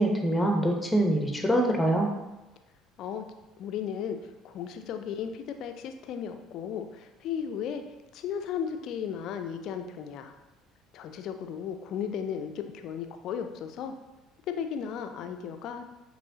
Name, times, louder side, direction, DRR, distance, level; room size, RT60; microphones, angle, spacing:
voice 1, 0.0-2.1, right 1 dB, 10° left, 2 dB, 0.8 m, -24 dB
voice 2, 3.6-4.2 4.4-7.8 8.1-10.3 10.9-13.9 14.6-15.9, left 8 dB, 55° left, 7 dB, 0.4 m, -35 dB
5.3 x 3.0 x 2.8 m, 1.0 s
figure-of-eight pair, 60°, 0 cm